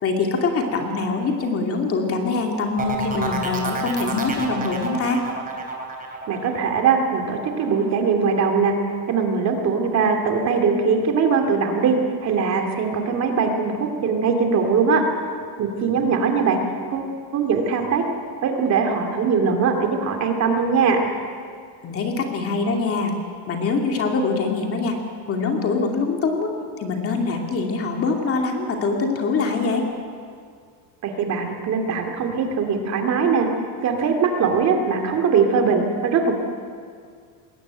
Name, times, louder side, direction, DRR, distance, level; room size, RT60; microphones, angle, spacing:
voice 1, 0.0-5.2 21.8-23.1 23.5-25.0 25.3-26.5 26.8-29.9, left 4 dB, 30° left, 2 dB, 2.5 m, -23 dB
sound 1, 2.8-8.4 8.8-9.3, right 3 dB, 15° right, 3.2 m, -30 dB
voice 2, 6.3-8.7 9.1-12.0 12.2-15.0 15.6-16.6 16.9-18.0 18.4-21.0 31.0-33.5 33.8-36.3, right 5 dB, 35° right, 3 dB, 2.6 m, -21 dB
21.0 x 17.0 x 9.1 m, 2.1 s
cardioid pair, 160°, 48 cm